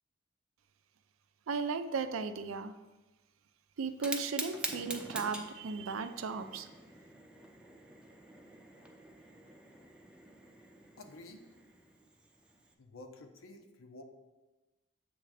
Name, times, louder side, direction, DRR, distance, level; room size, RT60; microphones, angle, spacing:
voice 1, 1.5-2.7 3.8-6.7, right 5 dB, 80° right, 10 dB, 0.5 m, -36 dB
Fire, 3.9-12.7, right 2 dB, 5° right, 0.6 m, -45 dB
voice 2, 11.0-11.4 12.8-14.0, left 2 dB, 90° left, 5 dB, 0.8 m, -51 dB
7.8 x 3.3 x 4.9 m, 1.1 s
head